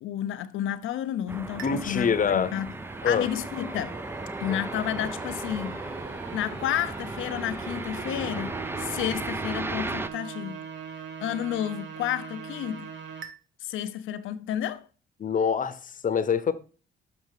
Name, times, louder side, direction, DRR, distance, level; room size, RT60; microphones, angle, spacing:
voice 1, 0.0-2.7 3.0-4.0 4.4-5.8 6.3-10.6 11.2-12.9 13.6-14.9, left 11 dB, 80° left, 0.7 m, -31 dB
sound 1, 1.3-10.1, right 2 dB, 10° right, 0.4 m, -36 dB
voice 2, 1.6-2.5 3.0-3.3 4.5-4.6 15.2-16.5, left 6 dB, 40° left, 0.9 m, -25 dB
sound 2, 1.6-13.3, right 6 dB, 70° right, 1.4 m, -42 dB
6.8 x 4.9 x 4.8 m
cardioid pair, 90°, 20 cm